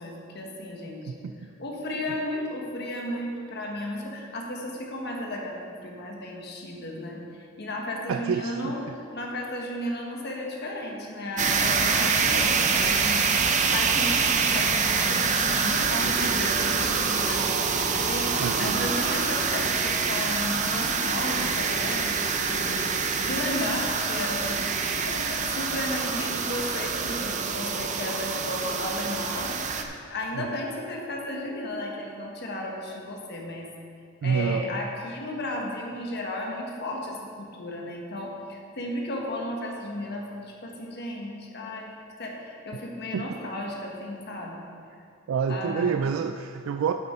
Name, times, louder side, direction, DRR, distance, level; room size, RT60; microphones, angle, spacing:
voice 1, 0.0-1.1 1.6-7.2 7.6-17.5 18.0-24.6 25.0-29.5 30.1-33.7 34.2-41.9 42.2-44.6 45.5-46.0, left 1 dB, 55° left, 0 dB, 1.4 m, -34 dB
voice 2, 8.1-8.7 18.4-18.9 30.3-30.5 34.2-34.7 43.1-43.4 45.3-46.9, right 6 dB, 80° right, 7 dB, 0.3 m, -28 dB
sound 1, 11.4-29.8, right 5 dB, 35° right, 0.6 m, -25 dB
8.7 x 8.0 x 4.4 m, 2.4 s
head